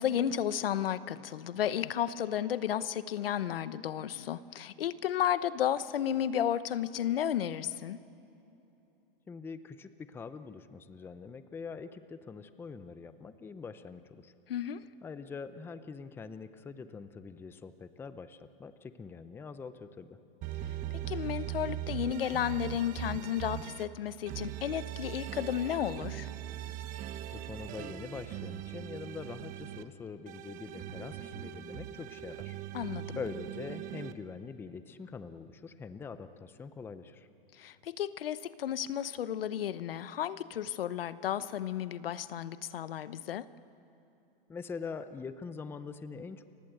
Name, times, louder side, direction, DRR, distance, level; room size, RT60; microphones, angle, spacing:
voice 1, 0.0-8.0 14.5-14.8 21.1-26.3 32.7-33.2 37.6-43.5, left 10 dB, 75° left, 15 dB, 1.1 m, -33 dB
voice 2, 9.3-14.3 15.0-20.2 27.3-32.6 33.2-37.3 44.5-46.4, left 5 dB, 10° left, 12 dB, 0.7 m, -44 dB
sound 1, 20.4-23.8 24.3-29.8 30.3-34.1, right 12 dB, 25° right, 1.2 m, -40 dB
30.0 x 24.0 x 8.0 m, 3.0 s
hypercardioid pair, 145°, 29 cm